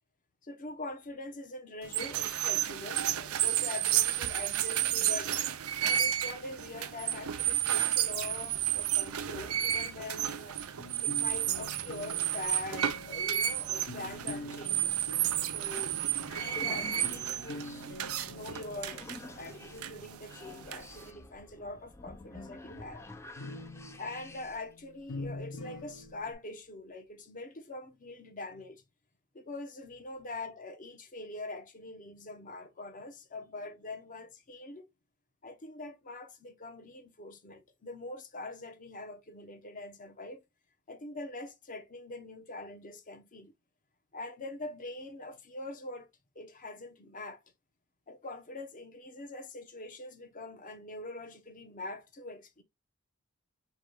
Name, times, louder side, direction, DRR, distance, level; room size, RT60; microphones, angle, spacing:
voice 1, 0.4-5.4 5.9-10.6 11.0-15.9 16.2-17.7 18.3-23.0 24.0-28.8 29.3-34.8 35.4-40.4 40.9-43.5 44.1-46.1 46.3-47.4 48.1-52.6, left 2 dB, 35° left, 0.8 m, -43 dB
sound 1, 1.8-21.1, right 11 dB, 75° right, 0.5 m, -32 dB
sound 2, 10.8-19.8 23.4-26.3, left 1 dB, 65° left, 0.9 m, -45 dB
sound 3, 15.9-24.7, left 3 dB, 10° left, 0.4 m, -49 dB
4.6 x 2.3 x 4.7 m
head